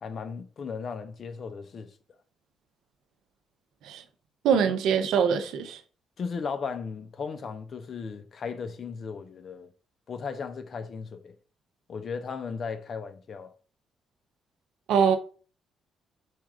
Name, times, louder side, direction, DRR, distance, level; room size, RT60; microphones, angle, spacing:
voice 1, 0.0-1.9 6.2-9.7 10.1-11.3 11.9-13.5, left 5 dB, 50° left, 0.7 m, -36 dB
voice 2, 4.4-5.8 14.9-15.2, right 7 dB, 80° right, 0.6 m, -23 dB
4.5 x 2.5 x 4.7 m
cardioid pair, 90°, 0 cm